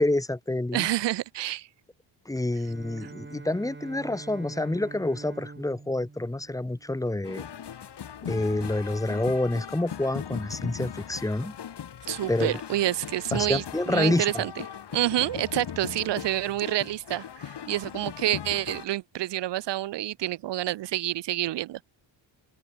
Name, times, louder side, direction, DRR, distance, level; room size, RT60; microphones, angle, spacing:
voice 1, 0.0-0.9 2.3-7.5 8.2-11.5 12.3-12.5 13.3-14.4, left 2 dB, 5° left, 1.0 m, -28 dB
voice 2, 0.7-1.7 3.0-3.1 12.1-14.6 14.9-21.8, right 14 dB, 60° right, 0.7 m, -28 dB
Bowed string instrument, 2.5-7.5, right 3 dB, 25° right, 7.1 m, -45 dB
sound 1, 7.2-18.8, left 8 dB, 55° left, 4.5 m, -39 dB
cardioid pair, 115°, 47 cm